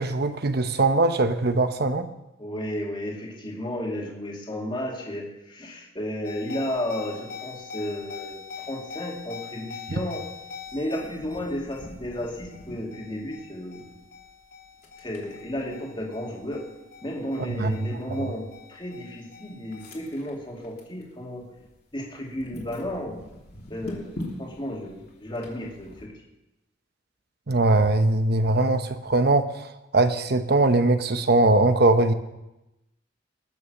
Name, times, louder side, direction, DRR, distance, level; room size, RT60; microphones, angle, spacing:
voice 1, 0.0-2.1 17.4-18.3 27.5-32.1, right 2 dB, 60° right, 9 dB, 1.0 m, -21 dB
voice 2, 2.4-10.2 10.7-13.9 15.0-16.6 17.0-21.4 21.9-23.2 23.7-26.1, left 1 dB, 25° left, -1 dB, 2.5 m, -33 dB
sound 1, 6.2-21.0 21.4-21.7 22.2-26.1, left 3 dB, 55° left, 3.0 m, -42 dB
20.0 x 7.0 x 6.6 m, 0.96 s
head